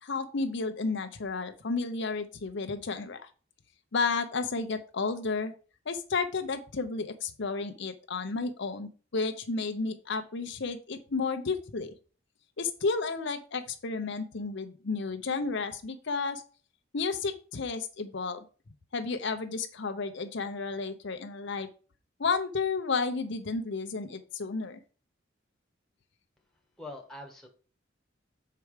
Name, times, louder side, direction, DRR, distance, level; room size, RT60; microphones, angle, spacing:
voice 1, 0.0-3.3 3.9-5.5 5.9-11.9 12.6-16.4 16.9-18.4 18.9-21.7 22.2-24.8, left 4 dB, 65° left, 7 dB, 0.7 m, -32 dB
voice 2, 26.4-27.5, left 1 dB, 5° left, 1 dB, 1.5 m, -45 dB
6.8 x 4.7 x 4.9 m, 0.37 s
head